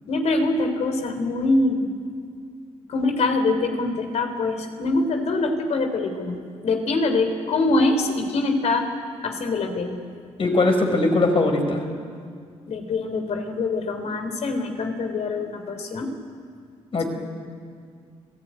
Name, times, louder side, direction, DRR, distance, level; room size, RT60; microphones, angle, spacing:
voice 1, 0.1-1.9 2.9-8.9 9.2-10.0 12.7-16.1, left 2 dB, 70° left, 6 dB, 3.6 m, -24 dB
voice 2, 10.4-11.8 16.9-17.1, left 2 dB, 50° left, 4 dB, 5.3 m, -20 dB
26.5 x 16.0 x 9.6 m, 2.1 s
cardioid pair, 75°, 12 cm